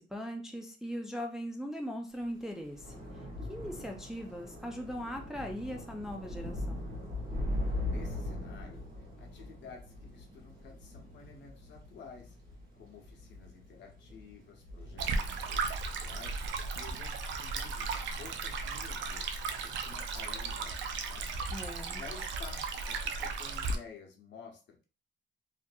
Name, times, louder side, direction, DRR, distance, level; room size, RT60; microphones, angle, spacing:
voice 1, 0.0-2.9 3.5-6.8 21.5-22.0, equal, ahead, 2 dB, 0.3 m, -39 dB
Thunder / Rain, 2.2-18.8 19.1-19.6 19.8-20.0, left 1 dB, 50° right, 1.1 m, -41 dB
voice 2, 7.7-8.8 9.2-12.4 12.7-19.3 19.6-21.3 22.0-24.8, left 5 dB, 70° left, 2 dB, 0.7 m, -52 dB
Stream, 15.0-23.8, right 4 dB, 75° right, 0.4 m, -35 dB
2.6 x 2.5 x 2.3 m, 0.34 s
cardioid pair, 130°, 19 cm